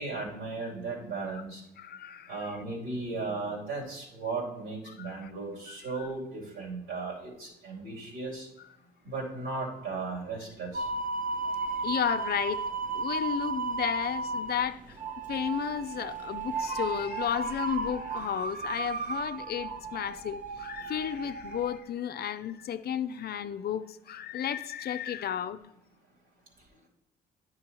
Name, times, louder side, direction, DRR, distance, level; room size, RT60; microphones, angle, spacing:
voice 1, 0.0-1.6 2.3-8.5 9.0-10.9, right 3 dB, 70° right, -3 dB, 3.0 m, -36 dB
voice 2, 1.8-2.5 5.0-5.3 6.0-6.1 11.7-12.6 12.9-15.0 15.3-25.6, left 9 dB, 50° left, 12 dB, 0.4 m, -33 dB
sound 1, 10.7-21.8, right 4 dB, 40° right, 0.7 m, -34 dB
10.5 x 6.2 x 3.0 m, 0.81 s
hypercardioid pair, 50°, 20 cm